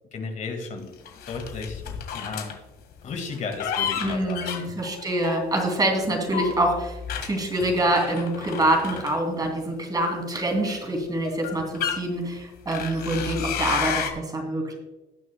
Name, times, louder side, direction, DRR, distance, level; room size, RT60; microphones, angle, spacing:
voice 1, 0.1-0.9 1.3-2.6 3.0-4.7, left 4 dB, 45° left, 4 dB, 1.9 m, -34 dB
sound 1, 1.1-2.6 3.3-5.8 6.3-9.6 10.5-10.6 11.2-12.0 12.7-14.1, left 8 dB, 65° left, 1.7 m, -31 dB
voice 2, 4.0-14.8, right 1 dB, 20° right, 2 dB, 2.7 m, -25 dB
18.0 x 6.4 x 2.2 m, 1.1 s
cardioid pair, 110°, 17 cm